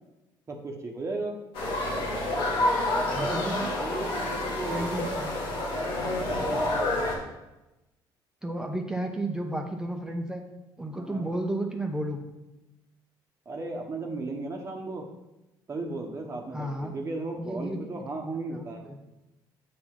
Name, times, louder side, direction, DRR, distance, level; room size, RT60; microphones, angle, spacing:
voice 1, 0.5-1.4 3.1-5.0 6.4-6.9 11.0-11.3 13.4-15.0 15.7-18.8, right 3 dB, 30° right, 1 dB, 1.1 m, -36 dB
sound 1, 1.5-7.2, left 1 dB, 85° left, 1.9 m, -28 dB
voice 2, 3.1-3.7 4.5-5.3 8.4-10.4 10.8-12.2 16.5-16.9 17.4-18.0 18.5-19.0, right 1 dB, 5° right, 3 dB, 0.9 m, -33 dB
8.5 x 4.5 x 3.8 m, 0.98 s
cardioid pair, 95°, 9 cm